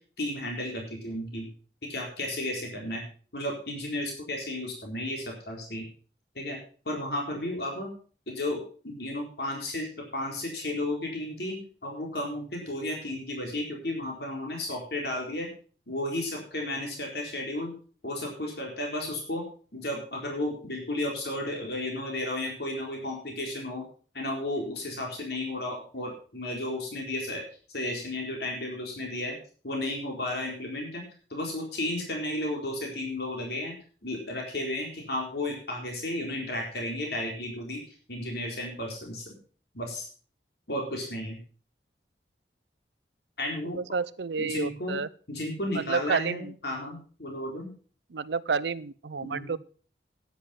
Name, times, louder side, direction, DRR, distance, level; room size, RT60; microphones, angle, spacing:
voice 1, 0.2-1.5 1.9-3.0 3.3-5.9 6.3-6.6 6.9-7.9 8.3-15.5 15.9-17.7 18.0-19.4 19.7-23.8 24.1-27.4 27.7-29.4 29.6-33.7 34.0-37.8 38.1-39.3 39.7-40.1 40.7-41.4 43.4-43.8 44.4-45.0 45.3-47.7 49.2-49.5, left 1 dB, 60° left, 0 dB, 4.1 m, -33 dB
voice 2, 43.8-45.1 45.7-46.5 48.1-49.6, right 5 dB, 75° right, 18 dB, 0.6 m, -30 dB
10.5 x 10.0 x 5.7 m, 0.41 s
head